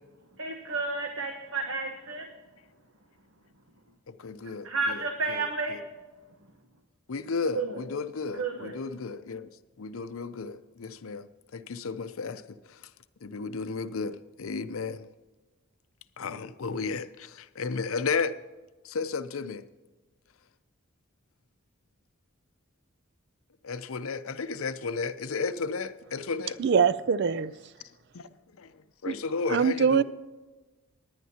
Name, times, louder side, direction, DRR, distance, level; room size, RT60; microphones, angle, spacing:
voice 1, 0.4-2.3 4.6-5.8 7.5-7.8 8.4-8.7, right 3 dB, 70° right, 1.2 m, -31 dB
voice 2, 4.1-5.8 7.1-9.5 9.8-12.9 13.2-15.1 16.2-18.4 18.8-19.6 23.6-26.6 28.1-28.3 28.6-30.0, left 4 dB, 75° left, 0.6 m, -34 dB
voice 3, 26.6-27.5 29.0-29.1 29.5-30.0, right 6 dB, 55° right, 0.4 m, -23 dB
18.5 x 10.5 x 2.9 m
head